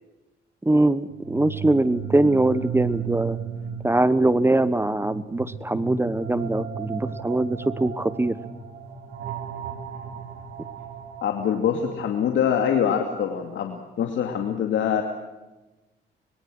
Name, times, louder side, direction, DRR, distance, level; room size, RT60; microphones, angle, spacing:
voice 1, 0.6-3.4 3.8-8.3, right 2 dB, 10° right, 15 dB, 1.1 m, -22 dB
sound 1, 1.1-13.0, right 7 dB, 75° right, 4.0 m, -35 dB
voice 2, 11.2-15.0, left 8 dB, 75° left, 4 dB, 2.4 m, -24 dB
25.0 x 22.5 x 6.3 m, 1.1 s
cardioid pair, 90°, 20 cm